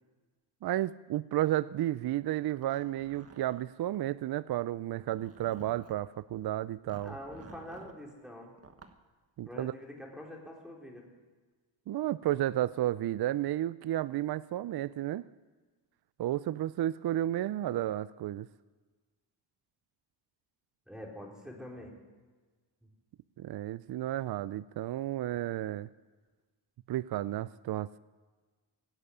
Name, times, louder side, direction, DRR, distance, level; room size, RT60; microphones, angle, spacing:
voice 1, 0.6-7.1 9.4-9.7 11.9-15.2 16.2-18.5 23.4-25.9 26.9-28.0, right 13 dB, 55° right, 18 dB, 0.5 m, -32 dB
Zipper (clothing), 2.5-4.0 4.8-6.1 6.9-8.0 8.6-9.0, right 4 dB, 30° right, 1.4 m, -54 dB
voice 2, 7.0-8.5 9.5-11.1 20.9-22.0 22.8-22.9, left 1 dB, ahead, -2 dB, 4.0 m, -45 dB
18.0 x 8.0 x 9.9 m, 1.3 s
cardioid pair, 75°, 48 cm